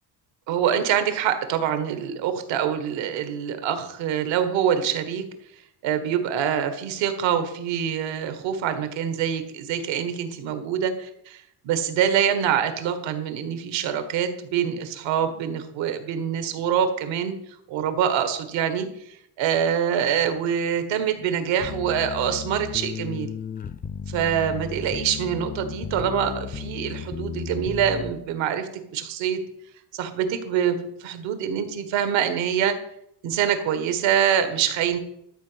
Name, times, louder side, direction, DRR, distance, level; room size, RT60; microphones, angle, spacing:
voice 1, 0.5-5.2 5.8-17.3 17.7-23.3 24.1-29.4 29.9-32.8 33.2-35.0, right 8 dB, 85° right, 9 dB, 1.7 m, -25 dB
sound 1, 21.6-28.1, left 7 dB, 20° left, 0.4 m, -34 dB
12.5 x 5.0 x 8.1 m, 0.76 s
cardioid pair, 145°, 44 cm